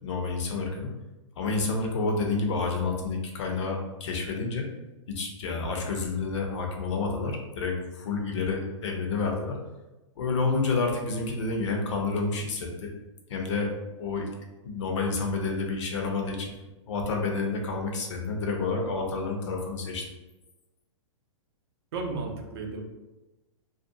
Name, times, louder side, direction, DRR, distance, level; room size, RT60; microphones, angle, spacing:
voice 1, 0.0-0.9 1.4-4.7 5.1-9.6 10.2-12.9 13.3-14.3 14.6-16.5 16.9-20.1, left 3 dB, 65° left, 2 dB, 0.6 m, -29 dB
voice 2, 21.9-22.8, right 3 dB, 55° right, 2 dB, 0.5 m, -33 dB
2.5 x 2.2 x 2.6 m, 1.1 s
hypercardioid pair, 145°, 16 cm